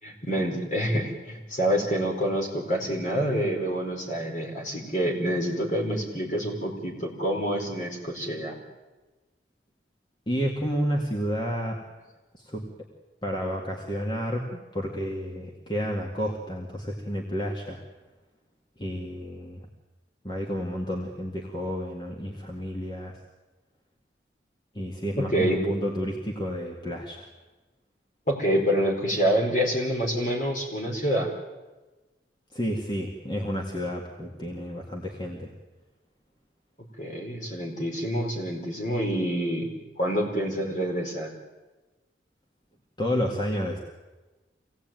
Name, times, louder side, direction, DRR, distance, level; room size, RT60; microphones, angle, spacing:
voice 1, 0.0-8.6 25.2-25.6 28.3-31.3 37.0-41.3, equal, 45° left, 0 dB, 4.9 m, -27 dB
voice 2, 10.3-11.8 12.3-12.6 13.2-17.8 18.8-19.6 20.2-23.2 24.7-27.3 32.5-35.5 43.0-43.8, equal, 25° left, 0 dB, 2.2 m, -30 dB
25.5 x 17.5 x 9.3 m, 1.2 s
head